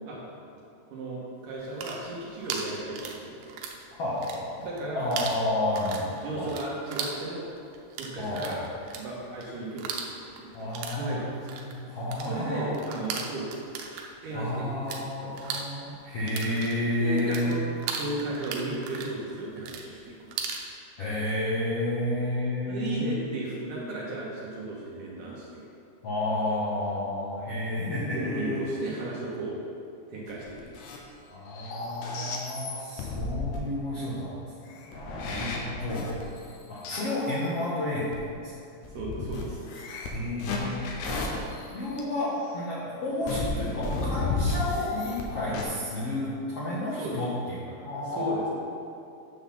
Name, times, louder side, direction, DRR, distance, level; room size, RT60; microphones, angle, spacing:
voice 1, 0.9-3.6 4.6-5.1 6.2-7.4 8.0-8.6 9.0-11.5 11.9-12.0 12.2-13.5 14.2-14.7 15.0-15.6 17.0-17.6 17.9-20.6 22.7-25.7 28.1-29.6 30.1-30.9 35.2-35.6 38.8-39.9 45.4-45.6 47.0-47.2 48.1-48.5, right 2 dB, 70° right, -5 dB, 2.3 m, -35 dB
sound 1, 1.6-3.8 4.1-4.8 5.1-15.0 15.3-20.7, right 6 dB, 85° right, 2.8 m, -37 dB
voice 2, 4.0-4.7 4.9-6.5 8.2-8.7 10.5-12.8 14.3-17.6 21.0-23.2 26.0-28.8 31.3-36.1 36.7-38.5 39.9-41.2 41.7-48.5, left 1 dB, 65° left, -9 dB, 1.5 m, -31 dB
sound 2, 30.3-31.1 31.5-33.6 34.7-37.5 38.1-38.2 38.8-42.0 43.2-45.2 45.5-45.6, left 3 dB, 85° left, 3.0 m, -33 dB
9.2 x 4.0 x 7.0 m, 2.6 s
omnidirectional pair, 4.7 m